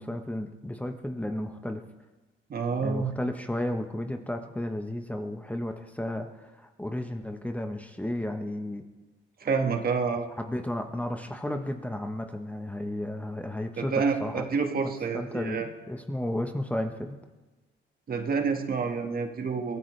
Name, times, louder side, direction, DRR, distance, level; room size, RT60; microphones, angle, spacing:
voice 1, 0.0-1.8 2.8-8.8 10.4-14.4 15.1-17.2, left 1 dB, 5° left, 5 dB, 1.1 m, -33 dB
voice 2, 2.5-3.1 9.4-10.3 13.8-15.7 18.1-19.8, right 5 dB, 50° right, 4 dB, 1.7 m, -28 dB
22.5 x 14.5 x 3.3 m, 1.2 s
cardioid pair, 90°, 20 cm